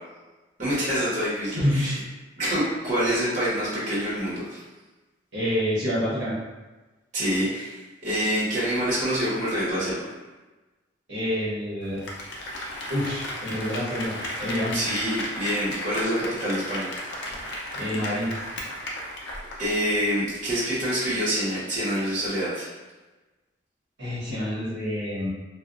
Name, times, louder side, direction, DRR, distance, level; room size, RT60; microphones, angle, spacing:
voice 1, 0.6-2.0 2.4-4.6 7.1-7.8 8.0-10.1 14.7-16.9 19.6-22.7, equal, 40° right, -9 dB, 1.1 m, -26 dB
voice 2, 1.5-1.9 5.3-6.4 11.1-12.0 12.9-14.7 17.7-18.3 24.0-25.3, equal, 65° right, -10 dB, 0.9 m, -27 dB
Applause, 11.8-20.0 20.3-20.4, left 1 dB, 70° left, 0.5 m, -35 dB
2.6 x 2.2 x 2.4 m, 1.2 s
head